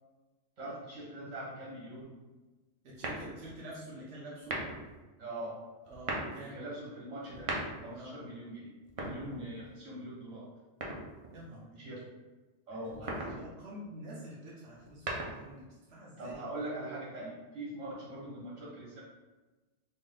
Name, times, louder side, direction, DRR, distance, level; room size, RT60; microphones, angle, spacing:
voice 1, 0.6-2.2 5.2-5.6 6.4-7.5 7.8-8.7 9.0-10.5 11.8-12.0 12.7-13.3 16.2-19.0, right 1 dB, 80° right, -6 dB, 1.5 m, -42 dB
voice 2, 2.8-4.5 5.9-6.6 7.9-8.1 11.3-11.8 12.8-16.5 16.8-16.9, right 1 dB, 60° right, -6 dB, 1.0 m, -47 dB
sound 1, 3.0-3.6 4.4-4.9 5.9-6.4 7.2-8.0 8.8-9.8 10.8-11.4 12.9-13.4 14.7-15.6, right 2 dB, 45° right, 0.4 m, -38 dB
3.9 x 2.1 x 3.7 m, 1.2 s
omnidirectional pair, 1.3 m